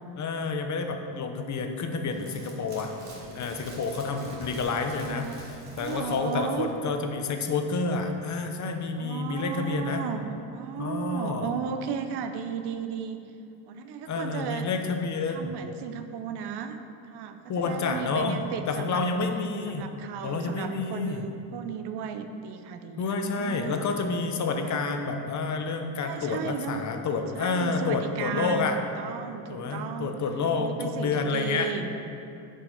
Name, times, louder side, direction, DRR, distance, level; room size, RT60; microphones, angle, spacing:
voice 1, 0.2-2.9 3.3-10.1 10.8-11.6 14.1-15.5 17.5-18.4 18.7-19.9 20.2-21.2 23.0-28.8 29.5-31.7, left 4 dB, 45° left, 5 dB, 1.0 m, -29 dB
sound 1, 2.1-6.7 7.0-7.1, right 1 dB, 40° right, 2.5 m, -46 dB
voice 2, 5.0-5.4 5.8-6.7 9.0-13.2 13.7-14.7 15.3-16.8 17.1-17.4 17.6-19.0 19.7-23.8 24.6-24.7 26.0-26.8 27.3-28.6 29.0-30.2 30.6-31.9, right 7 dB, 70° right, 8 dB, 0.8 m, -35 dB
8.5 x 5.7 x 6.5 m, 2.6 s
cardioid pair, 110°, 42 cm